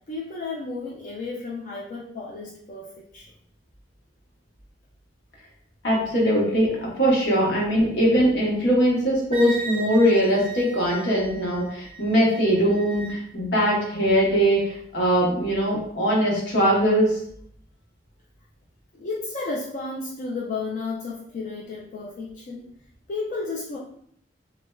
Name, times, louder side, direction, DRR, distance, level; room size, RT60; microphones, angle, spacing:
voice 1, 0.0-3.3 18.9-22.7 23.1-23.8, left 3 dB, 45° left, -4 dB, 0.4 m, -33 dB
voice 2, 5.8-17.2, equal, 75° left, -4 dB, 0.9 m, -21 dB
Wind instrument woodwind instrument, 9.3-13.2, right 3 dB, 30° right, 0.4 m, -38 dB
3.2 x 2.1 x 2.2 m, 0.66 s
head